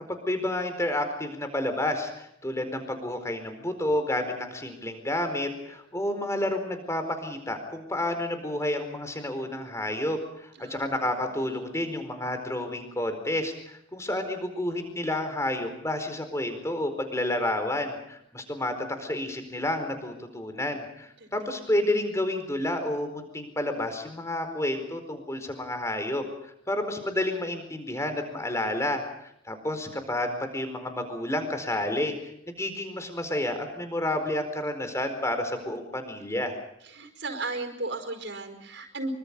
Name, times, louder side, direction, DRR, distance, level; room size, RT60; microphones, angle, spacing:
voice 1, 0.1-32.2 32.5-36.6, left 1 dB, 15° left, 7 dB, 4.5 m, -30 dB
voice 2, 10.5-11.6 21.2-21.5 36.8-39.1, right 3 dB, 70° right, 7 dB, 5.1 m, -36 dB
26.0 x 24.5 x 5.4 m, 0.76 s
head